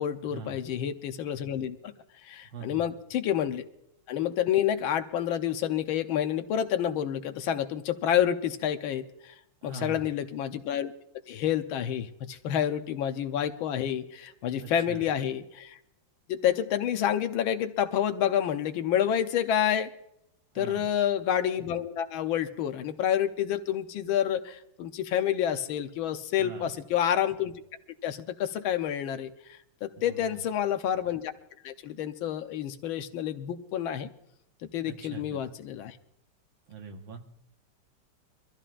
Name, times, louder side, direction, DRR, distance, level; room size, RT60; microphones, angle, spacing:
voice 1, 0.0-1.9 2.2-3.7 4.1-9.3 9.6-10.9 11.3-15.8 16.3-19.9 20.6-27.5 28.0-31.3 31.6-34.1 34.7-36.0, left 10 dB, 80° left, 9 dB, 1.6 m, -29 dB
voice 2, 2.5-2.8 9.6-10.0 14.6-15.0 20.6-20.9 26.4-26.7 30.1-30.4 34.9-35.4 36.7-37.2, right 4 dB, 80° right, 3 dB, 2.2 m, -42 dB
24.0 x 14.0 x 2.5 m, 0.80 s
omnidirectional pair, 2.2 m